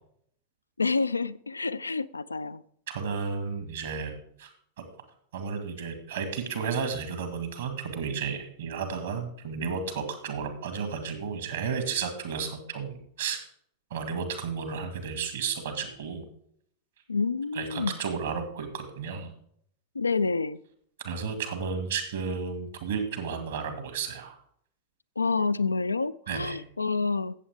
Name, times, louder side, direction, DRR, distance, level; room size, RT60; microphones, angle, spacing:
voice 1, 0.8-2.6 17.1-18.0 19.9-20.6 25.2-27.3, left 4 dB, 80° left, 14 dB, 0.3 m, -28 dB
voice 2, 2.9-4.5 4.8-4.9 5.3-13.5 13.9-16.3 17.5-19.3 21.0-24.4 26.3-26.6, right 6 dB, 60° right, 7 dB, 2.0 m, -33 dB
15.0 x 7.7 x 3.6 m, 0.66 s
figure-of-eight pair, 90°, 0 cm